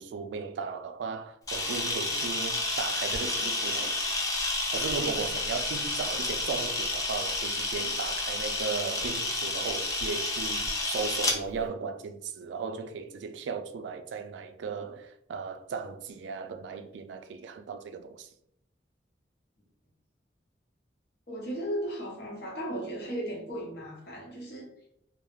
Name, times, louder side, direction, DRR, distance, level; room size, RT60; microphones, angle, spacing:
voice 1, 0.0-4.0 4.7-18.3, right 5 dB, 75° right, 0.3 m, -36 dB
Camera, 1.5-11.4, left 2 dB, 20° left, 0.4 m, -30 dB
voice 2, 21.3-24.7, right 1 dB, 60° left, 0.9 m, -36 dB
2.3 x 2.0 x 3.0 m
head